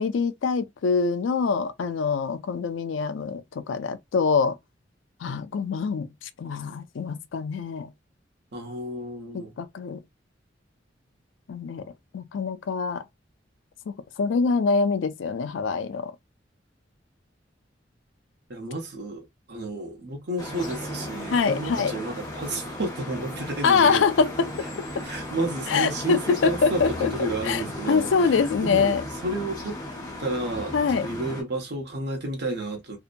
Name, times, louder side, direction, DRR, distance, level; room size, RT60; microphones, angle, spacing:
voice 1, 0.0-4.6 5.2-7.9 9.3-10.0 11.5-11.9 12.1-13.0 13.9-16.1 21.3-21.9 23.6-25.0 25.7-29.0 30.7-31.1, left 5 dB, 85° left, 0.4 m, -25 dB
voice 2, 8.5-9.5 18.5-24.0 25.0-28.3 28.6-29.0 29.2-29.8 30.2-33.0, right 1 dB, 60° right, 1.0 m, -31 dB
sound 1, 20.4-31.4, left 1 dB, 20° left, 1.1 m, -35 dB
2.8 x 2.1 x 2.5 m
head